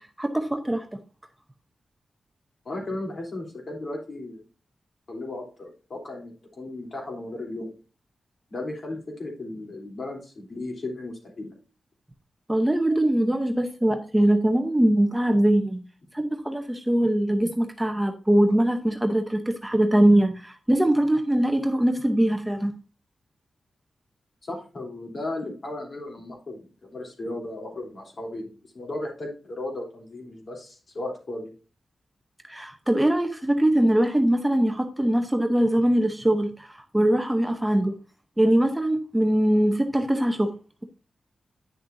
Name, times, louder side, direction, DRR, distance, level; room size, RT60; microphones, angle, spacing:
voice 1, 0.2-1.0 12.5-15.8 16.1-22.7 32.5-37.9 38.4-40.5, right 1 dB, 10° right, 5 dB, 0.8 m, -22 dB
voice 2, 2.6-4.4 5.1-7.7 8.5-11.5 24.4-31.5, left 2 dB, 50° left, 0 dB, 3.4 m, -35 dB
9.9 x 6.6 x 2.7 m, 0.34 s
wide cardioid pair, 120°, 0 cm